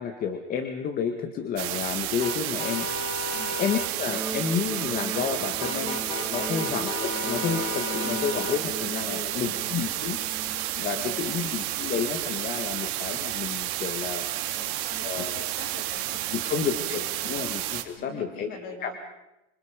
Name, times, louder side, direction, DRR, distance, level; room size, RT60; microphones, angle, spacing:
voice 1, 0.0-2.9 3.6-6.0 6.3-10.2 10.8-14.3 15.0-15.5 16.3-18.5 18.8-18.9, left 6 dB, 30° left, 7 dB, 1.8 m, -30 dB
sound 1, 1.6-17.8, right 15 dB, 50° right, 2.8 m, -31 dB
sound 2, 2.2-3.9 5.6-8.6, left 6 dB, 80° left, 2.3 m, -35 dB
Electric guitar, 4.1-12.1, right 2 dB, 5° right, 2.6 m, -38 dB
voice 2, 9.1-9.7 10.6-11.5 14.5-17.6 18.0-18.9, left 2 dB, 45° left, 3 dB, 7.3 m, -44 dB
26.5 x 26.5 x 5.2 m, 0.94 s
supercardioid pair, 155°, 30 cm